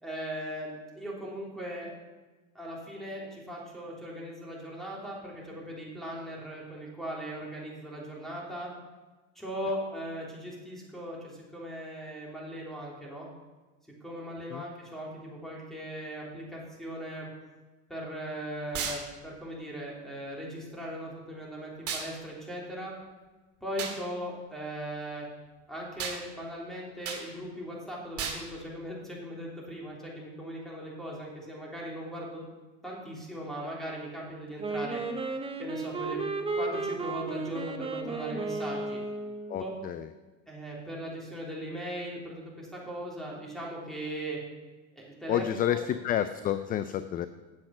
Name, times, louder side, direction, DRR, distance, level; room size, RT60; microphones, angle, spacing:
voice 1, 0.0-1.9 2.5-8.7 9.3-13.3 14.0-17.3 17.9-22.9 23.6-25.3 25.7-32.4 32.8-35.0 35.6-36.2 36.5-39.0 39.6-39.7 40.5-44.4 44.9-45.8, equal, ahead, -4 dB, 3.3 m, -39 dB
sound 1, 18.7-19.0 21.9-22.1 23.8-24.0 26.0-26.2 27.0-27.2 28.2-28.4, right 6 dB, 45° right, 2.0 m, -33 dB
Wind instrument woodwind instrument, 34.6-39.6, right 3 dB, 15° right, 1.0 m, -34 dB
voice 2, 39.5-40.1 45.3-47.3, left 10 dB, 25° left, 12 dB, 0.4 m, -29 dB
8.8 x 7.4 x 5.9 m, 1.2 s
supercardioid pair, 105°, 34 cm